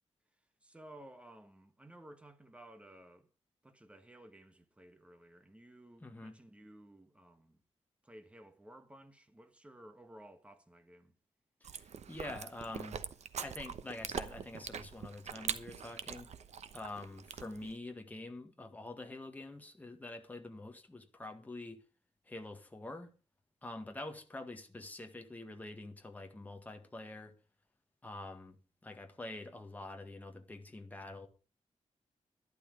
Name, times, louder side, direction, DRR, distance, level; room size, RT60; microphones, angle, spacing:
voice 1, 0.6-3.3 3.6-7.6 8.0-11.1, right 1 dB, 10° right, 1.3 m, -56 dB
voice 2, 6.0-6.4 11.6-13.0 13.4-16.3 16.7-21.8 22.3-23.1 23.6-27.3 28.0-28.6 28.8-31.3, left 2 dB, 15° left, 1.8 m, -46 dB
Chewing mastication, 11.6-17.8, right 7 dB, 75° right, 1.0 m, -43 dB
12.0 x 11.5 x 5.0 m
wide cardioid pair, 180°, 12 cm